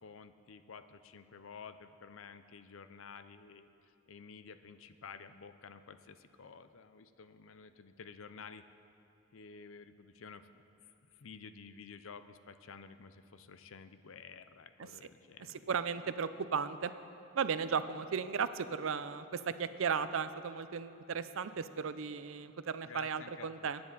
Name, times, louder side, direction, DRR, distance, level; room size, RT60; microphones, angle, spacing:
voice 1, 0.0-8.6 9.3-10.5 10.8-15.9 22.8-23.8, left 5 dB, 65° left, 11 dB, 0.5 m, -52 dB
voice 2, 15.7-16.9 17.3-23.8, right 6 dB, 65° right, 13 dB, 0.5 m, -35 dB
21.5 x 9.6 x 4.1 m, 2.6 s
head